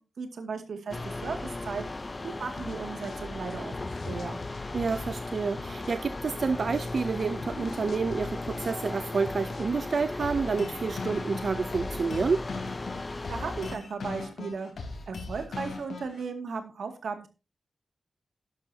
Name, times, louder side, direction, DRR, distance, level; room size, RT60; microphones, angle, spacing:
voice 1, 0.2-1.8 2.2-4.4 13.0-14.7 15.1-17.3, right 5 dB, 85° right, 2.3 m, -36 dB
sound 1, 0.9-13.8, left 2 dB, 30° left, 0.6 m, -36 dB
sound 2, 2.6-5.1 5.6-6.1 6.4-8.9 9.3-9.8, left 5 dB, 65° left, 0.7 m, -48 dB
voice 2, 4.7-12.4, right 4 dB, 60° right, 0.6 m, -29 dB
sound 3, 10.2-16.2, left 3 dB, 85° left, 3.7 m, -39 dB
12.0 x 11.5 x 2.8 m
wide cardioid pair, 100°, 0 cm